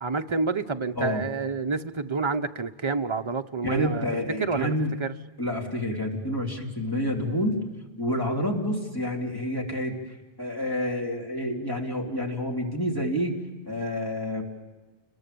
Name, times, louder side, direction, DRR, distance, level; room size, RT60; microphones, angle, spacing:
voice 1, 0.0-4.1 4.4-4.7 5.0-5.1, right 4 dB, 30° right, 7 dB, 0.9 m, -28 dB
voice 2, 3.6-4.9 5.4-7.6 8.0-10.0 10.4-13.4 13.7-14.4, left 1 dB, 20° left, -1 dB, 3.3 m, -28 dB
29.5 x 22.0 x 7.0 m, 1.2 s
omnidirectional pair, 1.0 m